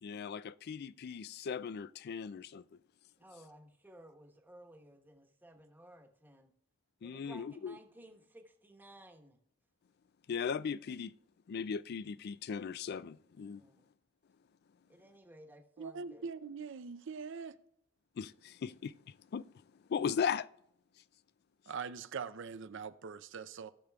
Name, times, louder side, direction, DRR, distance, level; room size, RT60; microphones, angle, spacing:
voice 1, 0.0-2.6 7.0-7.8 10.3-11.1 11.5-13.6 18.2-18.9 19.3-19.5 19.9-20.5, left 6 dB, 50° left, 0.3 m, -37 dB
voice 2, 3.2-6.5 7.0-9.4 13.5-13.9 14.9-16.2, right 1 dB, 10° right, 1.1 m, -57 dB
voice 3, 15.8-17.5 21.7-23.7, right 5 dB, 65° right, 0.5 m, -42 dB
17.5 x 6.6 x 2.3 m
head